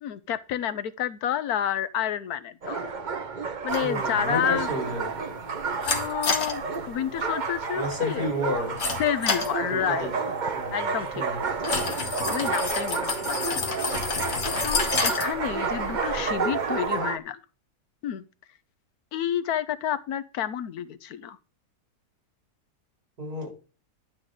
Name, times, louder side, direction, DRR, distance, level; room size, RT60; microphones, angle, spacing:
voice 1, 0.0-2.8 3.6-4.7 5.9-8.3 9.0-10.1 10.7-11.3 11.6-11.8 12.3-13.8 14.2-17.4 18.0-18.2 19.1-21.4, left 10 dB, 70° left, 1.2 m, -30 dB
sound 1, 2.6-17.2, right 5 dB, 35° right, 0.8 m, -30 dB
sound 2, 3.7-17.0, left 5 dB, 50° left, 1.4 m, -32 dB
voice 2, 3.8-5.1 7.7-8.8 9.7-10.1 10.5-10.8 11.1-11.5 23.2-23.5, equal, 90° right, 5.0 m, -31 dB
11.5 x 3.9 x 7.8 m
omnidirectional pair, 1.7 m